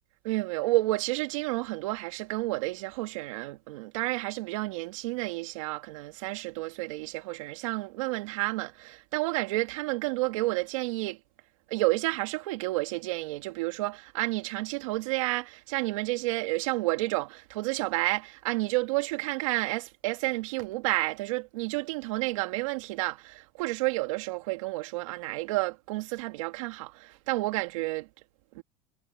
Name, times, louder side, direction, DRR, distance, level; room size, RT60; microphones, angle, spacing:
voice 1, 0.2-11.2 11.7-28.1 28.5-28.6, right 21 dB, 80° right, 2.6 m, -30 dB
supercardioid pair, 140°, 17 cm